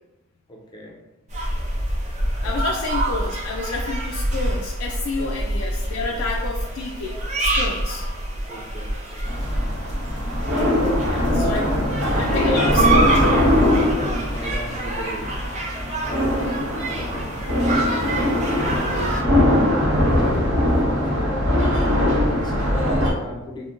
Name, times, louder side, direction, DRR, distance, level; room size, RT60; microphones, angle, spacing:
voice 1, 0.5-1.0 1.4-1.5 2.4-2.6 5.2-5.4 8.3-9.3 9.5-9.7 10.8-15.3 16.0-18.1 18.7-21.5 22.0-23.7, equal, 20° left, -1 dB, 0.4 m, -33 dB
sound 1, 1.3-19.2, right 2 dB, 35° right, 0.5 m, -27 dB
voice 2, 2.4-8.1 11.1-11.7 12.1-13.1 16.4-16.6, left 3 dB, 80° left, -1 dB, 0.3 m, -29 dB
sound 2, 9.3-23.1, left 1 dB, 80° right, 0.8 m, -21 dB
3.5 x 2.1 x 2.4 m, 0.95 s
head